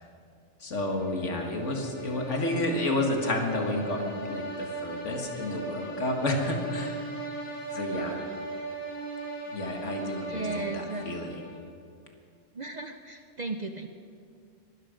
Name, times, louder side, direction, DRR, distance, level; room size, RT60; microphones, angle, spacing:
voice 1, 0.6-4.4 4.8-7.0 7.7-8.2 9.5-11.4, left 2 dB, 65° left, 3 dB, 2.1 m, -30 dB
sound 1, 0.8-11.7, right 2 dB, 85° left, 3.3 m, -38 dB
voice 2, 10.3-11.2 12.5-13.9, right 3 dB, 45° right, 6 dB, 0.6 m, -35 dB
22.5 x 12.5 x 5.1 m, 2.4 s
omnidirectional pair, 1.3 m